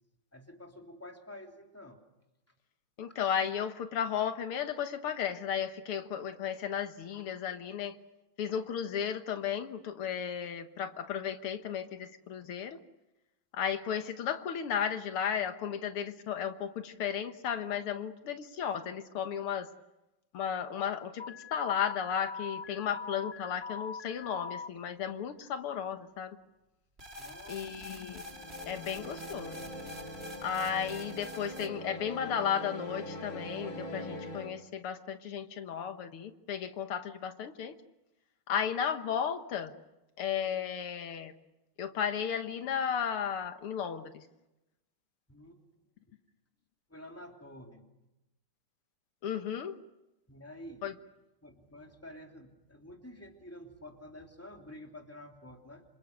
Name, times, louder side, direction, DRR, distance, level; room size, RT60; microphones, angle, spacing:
voice 1, 0.3-2.0 2.5-2.6 27.2-27.6 28.1-28.2 45.3-45.6 46.9-47.9 50.3-50.9 51.4-55.8, left 1 dB, 5° left, 3 dB, 3.0 m, -49 dB
voice 2, 3.0-8.0 8.4-12.8 13.5-19.7 20.3-21.2 21.5-26.4 27.5-28.2 28.7-29.6 30.4-37.7 38.5-39.7 40.2-41.3 41.8-44.2 49.2-49.8 50.8-50.9, left 8 dB, 80° left, 9 dB, 2.2 m, -34 dB
Alarm, 21.2-24.7, left 5 dB, 35° left, 0.9 m, -42 dB
sound 1, 27.0-31.7, left 1 dB, 25° right, 3.3 m, -46 dB
sound 2, 28.2-34.5, equal, 65° left, 5.0 m, -43 dB
27.5 x 27.0 x 6.6 m, 0.96 s
omnidirectional pair, 2.4 m